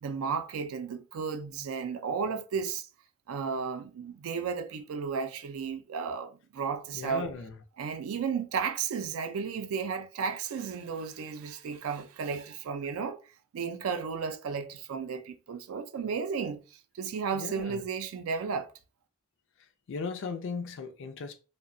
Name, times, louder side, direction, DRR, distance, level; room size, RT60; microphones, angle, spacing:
voice 1, 0.0-2.9 3.3-7.3 7.8-13.2 13.5-18.7, right 6 dB, 80° right, 0.4 m, -34 dB
voice 2, 6.9-7.5 17.4-17.8 19.9-21.3, left 4 dB, 60° left, 0.4 m, -37 dB
2.7 x 2.1 x 2.5 m
head